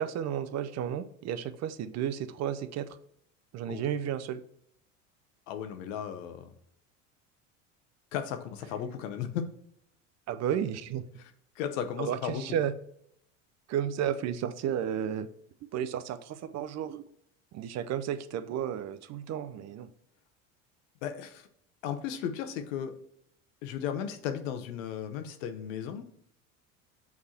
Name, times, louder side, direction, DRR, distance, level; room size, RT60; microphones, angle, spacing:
voice 1, 0.0-3.0 3.5-4.4 10.3-11.0 12.0-12.7 13.7-15.3 15.7-17.0 17.5-19.9, right 9 dB, 45° right, 12 dB, 0.5 m, -32 dB
voice 2, 5.5-6.5 8.1-9.4 11.2-11.3 11.6-12.6 21.0-21.5 21.8-22.9 23.6-26.0, left 9 dB, 75° left, 8 dB, 0.9 m, -35 dB
6.4 x 3.6 x 4.2 m, 0.69 s
hypercardioid pair, 85°, 39 cm